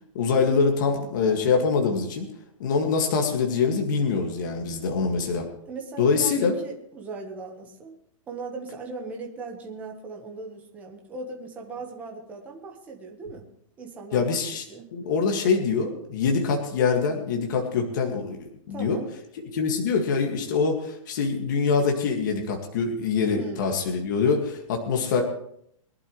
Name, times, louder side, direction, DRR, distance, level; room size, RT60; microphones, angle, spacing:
voice 1, 0.1-2.3 2.6-5.5 6.0-6.5 14.1-14.6 14.9-19.0 19.5-25.2, left 5 dB, 35° left, 2 dB, 2.1 m, -24 dB
voice 2, 5.7-7.9 8.3-13.5 13.8-14.4 14.7-14.9 18.7-19.1 23.3-23.8, right 3 dB, 10° right, 0 dB, 1.3 m, -38 dB
22.5 x 11.5 x 3.2 m, 0.70 s
hypercardioid pair, 180°, 17 cm